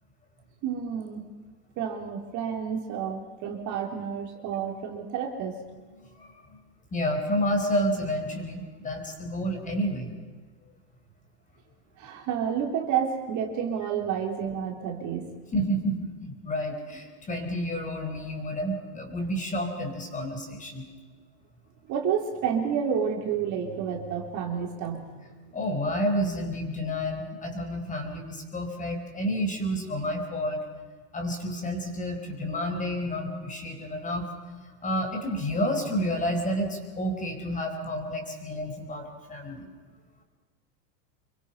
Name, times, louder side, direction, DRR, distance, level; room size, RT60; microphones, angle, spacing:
voice 1, 0.6-1.2 1.8-5.6 12.0-15.4 21.9-25.1, right 7 dB, 35° right, 3 dB, 3.5 m, -30 dB
voice 2, 6.1-6.6 6.9-10.1 15.5-20.8 25.5-30.6 31.1-34.3 34.8-39.7, equal, 15° left, 4 dB, 4.5 m, -30 dB
27.0 x 23.5 x 5.6 m, 1.4 s
supercardioid pair, 140°, 48 cm